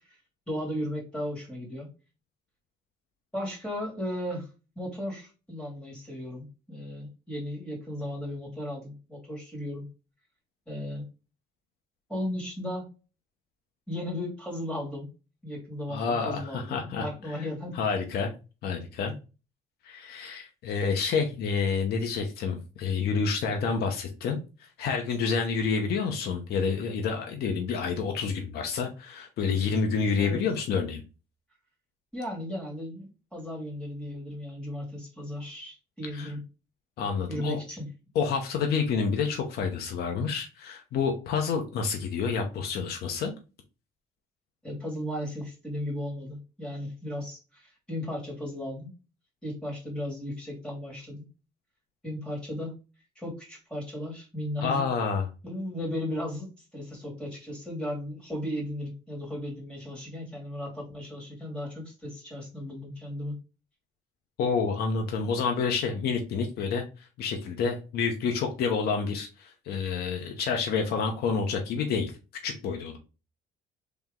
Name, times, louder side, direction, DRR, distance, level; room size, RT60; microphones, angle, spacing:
voice 1, 0.5-1.9 3.3-4.5 4.8-9.8 10.7-11.0 12.1-12.9 13.9-15.1 15.4-17.7 30.2-30.4 32.1-36.4 37.3-37.9 44.6-48.9 49.4-51.2 52.0-52.8 53.2-54.8 55.4-56.5 56.7-63.3, left 1 dB, 5° left, -2 dB, 2.2 m, -35 dB
voice 2, 15.9-17.5 17.7-18.3 18.6-19.2 19.8-31.0 36.1-36.3 37.0-37.6 38.1-43.3 54.6-55.3 64.4-72.1 72.4-73.0, left 5 dB, 70° left, 3 dB, 0.8 m, -29 dB
3.4 x 3.0 x 3.6 m, 0.31 s
cardioid pair, 110°, 17 cm